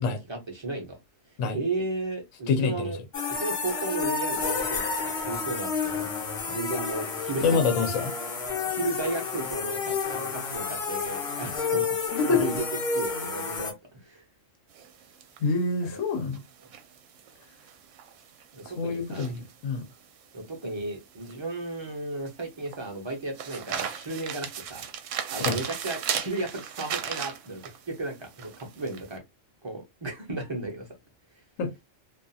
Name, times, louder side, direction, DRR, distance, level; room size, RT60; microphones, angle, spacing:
voice 1, 0.3-1.0 1.5-3.0 3.3-6.1 6.5-7.6 8.6-11.9 12.3-12.6 12.9-14.2 15.8-15.9 18.5-19.3 20.3-24.8 25.3-29.2 29.6-30.9, right 2 dB, 30° right, 0.6 m, -34 dB
voice 2, 2.5-2.9 7.4-8.1 12.1-12.5 15.4-16.4 18.8-19.8 25.4-25.6 31.6-31.7, left 5 dB, 80° left, 1.0 m, -26 dB
sound 1, 3.1-13.7, left 5 dB, 55° left, 0.9 m, -30 dB
sound 2, 14.7-29.1, right 8 dB, 75° right, 0.9 m, -37 dB
2.5 x 2.3 x 2.6 m
omnidirectional pair, 1.3 m